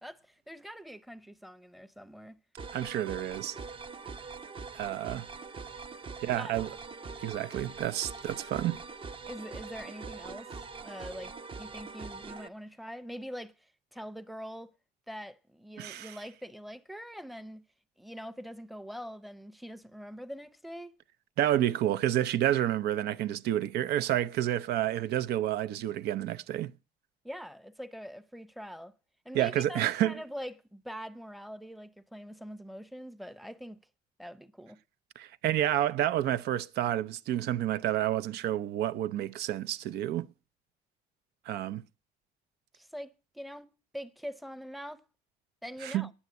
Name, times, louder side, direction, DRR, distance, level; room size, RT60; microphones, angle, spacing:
voice 1, 0.0-2.4 6.3-6.5 9.2-11.3 11.6-14.7 15.1-17.6 18.0-20.9 27.2-28.9 29.2-33.8 34.2-34.8 42.7-43.7 43.9-45.0 45.6-46.1, equal, ahead, 0.7 m, -43 dB
sound 1, 2.6-12.5, right 4 dB, 30° right, 0.7 m, -43 dB
voice 2, 2.7-3.6 4.7-5.3 6.2-6.7 7.2-8.8 15.8-16.1 21.4-26.7 29.3-30.2 35.2-40.3 41.5-41.8 45.8-46.1, right 12 dB, 75° right, 0.6 m, -29 dB
9.8 x 8.1 x 9.3 m
cardioid pair, 110°, 17 cm